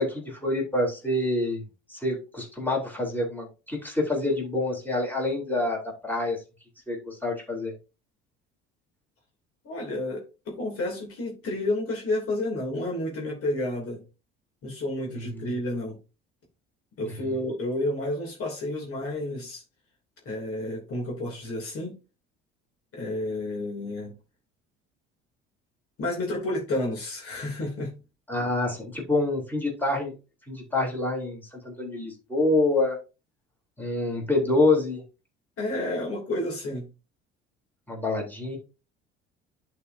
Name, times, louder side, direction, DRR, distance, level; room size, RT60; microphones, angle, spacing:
voice 1, 0.0-1.6 1.9-6.4 6.9-7.7 15.1-15.5 28.3-30.1 30.5-33.0 33.8-35.0 37.9-38.6, left 2 dB, 5° left, -1 dB, 3.6 m, -27 dB
voice 2, 9.6-14.0 14.6-16.0 17.0-19.6 20.2-21.9 22.9-24.1 26.0-27.9 35.6-36.9, left 1 dB, 50° left, 0 dB, 3.1 m, -30 dB
11.0 x 4.9 x 2.8 m, 0.31 s
hypercardioid pair, 65°, 30 cm